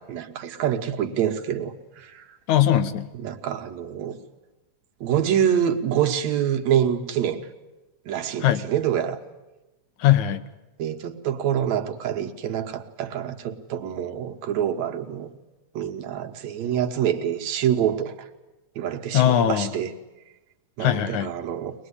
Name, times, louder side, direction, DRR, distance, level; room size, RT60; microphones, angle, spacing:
voice 1, 0.0-2.2 3.2-4.2 5.0-7.5 8.1-9.2 10.8-15.3 15.7-18.1 18.8-19.9 20.8-21.7, right 9 dB, 70° right, 4 dB, 2.6 m, -26 dB
voice 2, 2.5-3.1 8.4-8.6 10.0-10.4 19.1-19.7 20.8-21.3, left 11 dB, 90° left, 11 dB, 2.5 m, -20 dB
23.0 x 20.0 x 9.8 m, 1.1 s
omnidirectional pair, 3.3 m